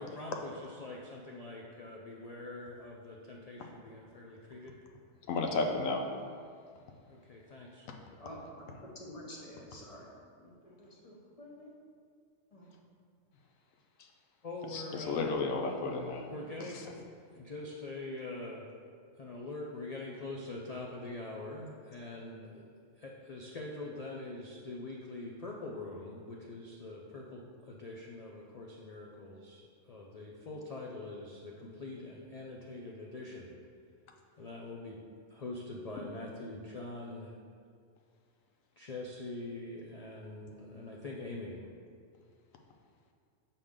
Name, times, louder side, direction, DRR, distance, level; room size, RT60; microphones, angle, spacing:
voice 1, 0.0-4.8 7.1-7.8 14.4-15.2 16.3-17.0 17.3-18.7 19.2-22.7 23.0-29.6 29.9-33.5 34.4-35.0 35.3-37.4 38.8-41.6, left 2 dB, 65° left, -2 dB, 0.3 m, -44 dB
voice 2, 5.3-6.0 14.7-16.3, left 3 dB, 85° left, 3 dB, 1.1 m, -32 dB
voice 3, 8.2-11.7 12.5-12.7, equal, 30° left, -3 dB, 0.8 m, -49 dB
6.5 x 4.3 x 3.6 m, 2.2 s
omnidirectional pair, 1.3 m